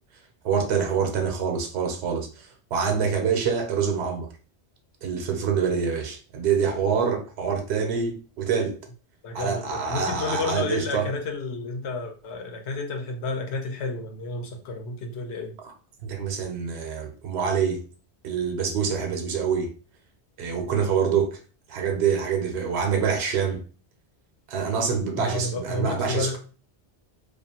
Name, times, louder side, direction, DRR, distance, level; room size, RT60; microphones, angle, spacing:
voice 1, 0.4-4.3 5.0-8.8 9.3-11.1 16.0-17.8 18.2-19.7 20.4-21.4 21.7-23.6 24.5-26.4, right 6 dB, 90° right, 0.9 m, -26 dB
voice 2, 9.2-15.5 25.2-26.4, left 3 dB, 90° left, 0.9 m, -31 dB
2.4 x 2.4 x 2.7 m
omnidirectional pair, 1.1 m